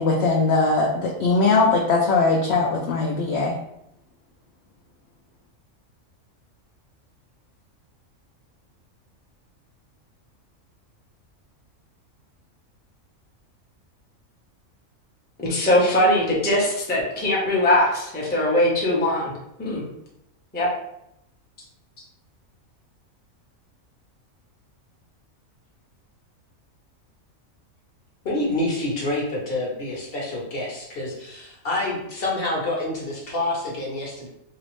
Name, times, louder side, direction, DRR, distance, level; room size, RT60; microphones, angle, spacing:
voice 1, 0.0-3.5, left 3 dB, 65° left, -1 dB, 0.7 m, -20 dB
voice 2, 15.4-19.3 19.6-19.8 20.5-20.7, left 1 dB, 10° left, -5 dB, 0.5 m, -21 dB
voice 3, 28.2-34.3, left 2 dB, 50° left, -3 dB, 1.0 m, -27 dB
3.0 x 2.8 x 3.0 m, 0.81 s
omnidirectional pair, 1.4 m